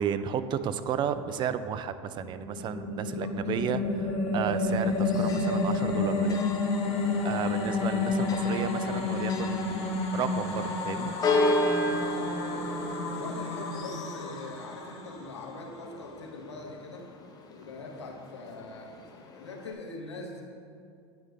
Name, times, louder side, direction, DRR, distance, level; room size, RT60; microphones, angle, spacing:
voice 1, 0.0-6.4 7.2-11.1, right 8 dB, 35° right, 11 dB, 0.4 m, -33 dB
sound 1, 2.2-15.6, left 3 dB, 45° left, 1.4 m, -30 dB
Church bell, 4.7-19.7, left 1 dB, 25° left, 0.8 m, -35 dB
voice 2, 11.9-12.8 13.1-17.1 17.5-20.4, left 3 dB, 85° left, 0 dB, 1.0 m, -43 dB
9.2 x 3.2 x 5.3 m, 2.4 s
hypercardioid pair, 85°, 14 cm